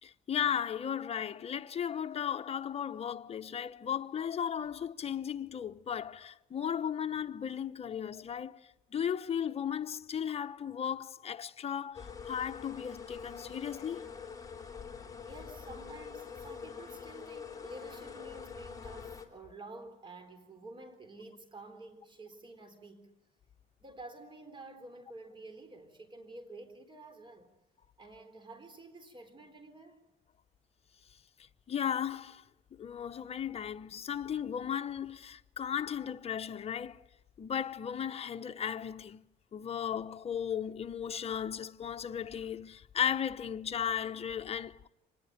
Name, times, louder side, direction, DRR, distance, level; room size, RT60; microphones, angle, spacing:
voice 1, 0.0-8.6 8.9-14.1 31.7-32.4 32.8-37.0 37.4-39.2 39.5-44.9, left 8 dB, 35° left, 1.0 m, -35 dB
sound 1, 11.9-19.3, left 6 dB, 20° left, 3.7 m, -45 dB
voice 2, 15.2-23.1 23.8-27.5 28.0-30.0, right 2 dB, 30° right, 3.9 m, -50 dB
25.0 x 20.0 x 9.0 m
cardioid pair, 110°, 17 cm